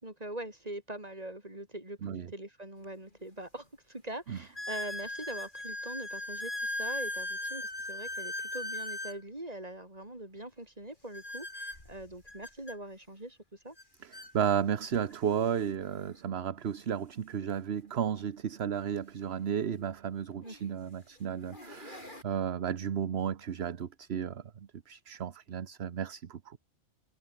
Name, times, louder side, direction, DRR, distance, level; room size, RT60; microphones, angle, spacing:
voice 1, 0.0-13.7 20.4-20.5, right 1 dB, 30° right, 5.1 m, -43 dB
sound 1, 2.8-2.9 3.6-3.7 4.5-9.2 11.1-12.8 13.8-13.9 14.1-14.3 15.1-15.2 17.4-17.5 19.6-19.7 20.4-20.7 21.3-22.2, left 1 dB, 40° left, 5.5 m, -38 dB
voice 2, 14.0-24.4 24.9-26.6, right 8 dB, 60° right, 1.2 m, -33 dB
omnidirectional pair, 1.3 m